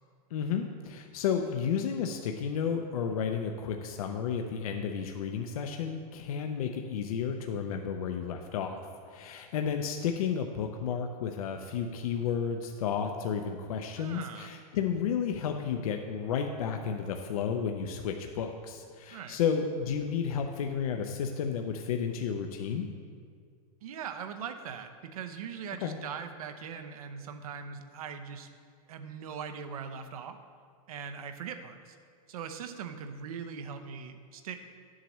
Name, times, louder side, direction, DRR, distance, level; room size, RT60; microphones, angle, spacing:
voice 1, 0.3-8.7 9.1-22.9 25.8-26.0, left 7 dB, 70° left, 4 dB, 0.6 m, -32 dB
voice 2, 14.0-14.5 19.1-19.4 23.8-28.5 28.9-30.4 30.9-32.0 32.3-34.5, right 7 dB, 70° right, 8 dB, 0.7 m, -41 dB
11.0 x 7.4 x 3.1 m, 2.1 s
supercardioid pair, 175°, 19 cm